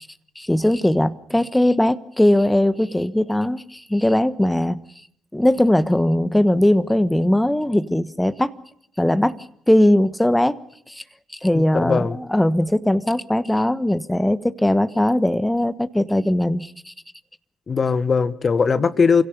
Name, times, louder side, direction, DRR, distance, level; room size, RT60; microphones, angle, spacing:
voice 1, 0.3-4.8 5.3-8.5 9.0-9.4 9.7-10.6 10.9-11.0 11.4-16.9, left 1 dB, 10° left, 1.3 m, -19 dB
voice 2, 11.5-12.2 17.7-19.2, left 5 dB, 45° left, 1.4 m, -19 dB
28.0 x 17.0 x 6.8 m
hypercardioid pair, 45°, 0 cm